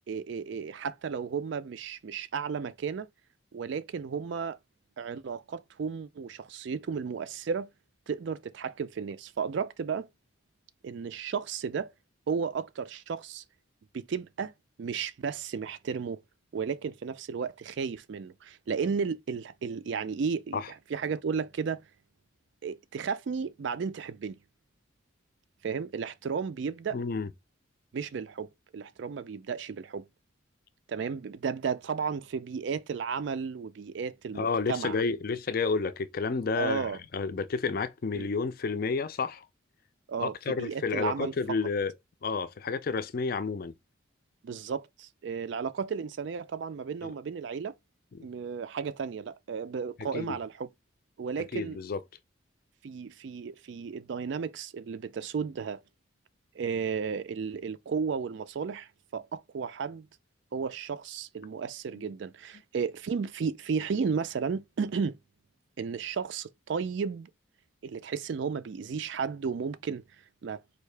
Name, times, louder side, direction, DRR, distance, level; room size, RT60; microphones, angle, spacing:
voice 1, 0.1-3.1 3.5-4.6 5.0-7.7 8.1-10.1 10.8-11.9 12.3-13.4 13.9-14.5 14.8-16.2 16.5-20.6 20.9-21.8 22.6-24.4 25.6-27.0 27.9-30.0 30.9-35.0 36.5-37.0 38.2-38.3 40.1-41.6 44.4-47.7 48.2-50.7 51.2-51.8 52.8-55.8 56.5-60.1 60.5-65.2 65.8-67.3 67.8-70.0 70.4-70.6, right 6 dB, 60° right, 0.4 m, -33 dB
voice 2, 26.9-27.3 34.3-39.5 40.2-41.9 42.2-43.7 47.0-47.1 48.1-48.3 50.0-50.4 51.5-52.0 61.9-62.0, left 4 dB, 45° left, 0.4 m, -31 dB
4.5 x 2.7 x 3.2 m
head